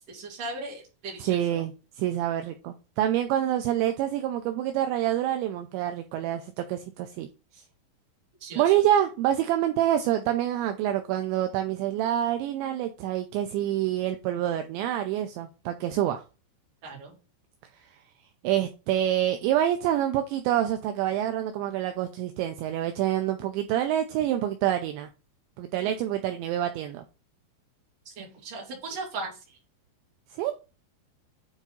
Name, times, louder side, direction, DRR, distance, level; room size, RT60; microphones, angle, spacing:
voice 1, 0.1-1.6 8.4-8.7 16.8-17.2 28.0-29.6, right 3 dB, 40° right, 2.8 m, -38 dB
voice 2, 1.2-7.3 7.5-7.6 8.6-16.2 18.4-25.1 25.6-27.0 30.3-30.5, right 12 dB, 80° right, 2.7 m, -27 dB
9.1 x 3.6 x 4.1 m
omnidirectional pair, 5.7 m